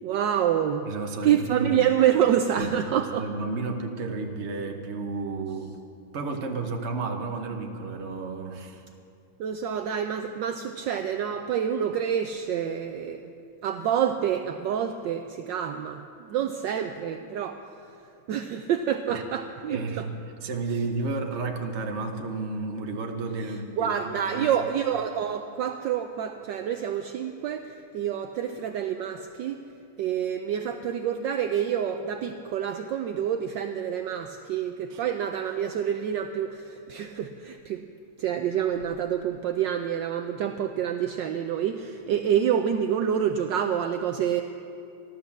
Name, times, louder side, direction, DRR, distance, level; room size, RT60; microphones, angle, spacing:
voice 1, 0.0-0.9 1.2-3.2 9.4-13.3 13.6-17.6 18.3-20.1 23.5-29.6 30.0-37.8 38.2-44.4, right 9 dB, 75° right, 6 dB, 1.2 m, -27 dB
voice 2, 0.9-1.8 2.6-2.7 3.0-5.7 6.1-8.8 19.1-19.2 19.7-20.1 20.4-24.5 34.9-35.0, right 3 dB, 40° right, 3 dB, 1.1 m, -32 dB
14.5 x 12.0 x 7.1 m, 2.6 s
omnidirectional pair, 2.3 m